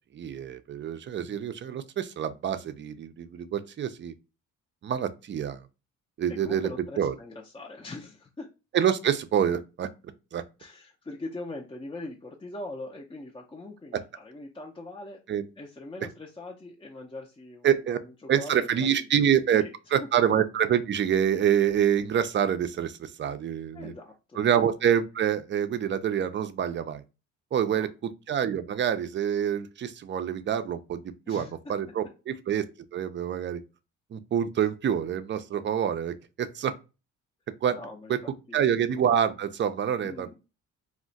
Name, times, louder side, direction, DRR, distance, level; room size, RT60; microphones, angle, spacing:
voice 1, 0.1-4.1 4.8-5.6 6.2-6.7 7.0-7.1 8.7-9.9 10.3-10.4 15.3-15.5 17.6-18.0 18.3-19.6 19.9-23.9 24.4-27.0 27.5-27.9 28.3-32.6 32.9-33.6 34.1-36.7 37.6-37.8 38.1-38.2 38.5-40.3, right 9 dB, 40° right, 0.4 m, -26 dB
voice 2, 6.3-8.5 10.6-15.2 15.6-19.2 19.5-19.7 20.0-20.1 23.7-24.4 27.6-27.9 31.3-31.5 37.7-38.6 40.0-40.4, left 2 dB, 15° left, 0.5 m, -42 dB
2.3 x 2.1 x 3.9 m
cardioid pair, 90°, 30 cm